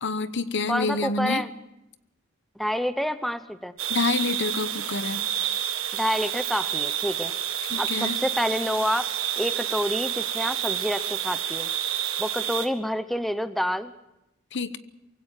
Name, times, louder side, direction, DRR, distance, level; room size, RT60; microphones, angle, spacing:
voice 1, 0.0-1.4 3.9-5.3 7.6-8.2 14.5-14.8, left 4 dB, 60° left, 13 dB, 0.9 m, -28 dB
voice 2, 0.7-1.5 2.6-3.7 5.9-7.3 7.8-9.1 9.4-11.7 12.2-13.9, equal, ahead, 11 dB, 0.7 m, -28 dB
sound 1, 3.8-12.7, right 10 dB, 80° right, 1.6 m, -29 dB
23.5 x 16.5 x 7.4 m, 0.87 s
head